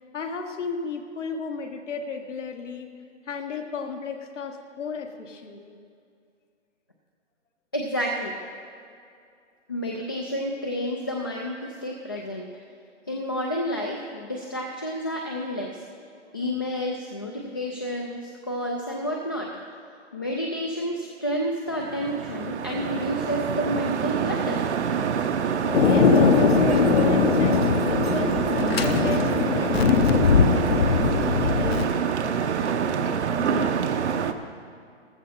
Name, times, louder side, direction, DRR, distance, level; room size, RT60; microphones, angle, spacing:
voice 1, 0.1-2.9 3.2-5.8 12.1-12.2 25.6-28.4 28.7-33.7, left 5 dB, 80° left, 3 dB, 1.7 m, -34 dB
voice 2, 7.7-8.4 9.7-12.5 13.1-15.8 16.3-19.5 20.1-24.7, equal, 20° left, 0 dB, 0.4 m, -30 dB
sound 1, 21.7-34.3, right 7 dB, 65° right, 0.9 m, -26 dB
Thunder, 25.7-31.8, left 5 dB, 55° left, 0.9 m, -21 dB
15.0 x 12.5 x 4.2 m, 2.4 s
hypercardioid pair, 160°, 36 cm